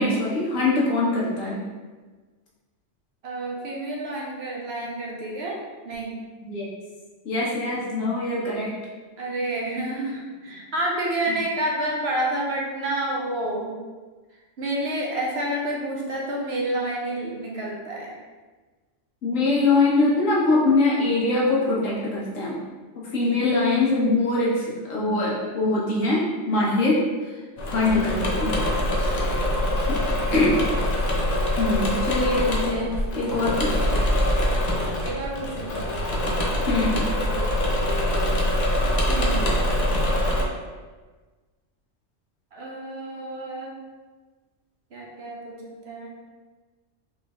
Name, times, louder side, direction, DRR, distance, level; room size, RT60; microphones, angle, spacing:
voice 1, 0.0-1.6 6.4-6.7 7.2-8.7 19.2-22.6 22.9-27.0 27.7-28.5 29.9-30.6 31.6-33.9 36.7-37.1, left 2 dB, 75° left, -5 dB, 1.4 m, -23 dB
voice 2, 3.2-6.2 9.2-13.7 14.6-18.1 28.7-29.2 29.6-30.0 31.8-32.2 35.0-35.7 37.2-38.4 39.1-39.4 42.5-43.8 44.9-46.1, right 1 dB, 60° right, -2 dB, 0.9 m, -30 dB
Engine / Mechanisms, 27.6-40.4, left 1 dB, 50° left, 0.5 m, -24 dB
4.2 x 3.8 x 2.4 m, 1.3 s
omnidirectional pair, 1.3 m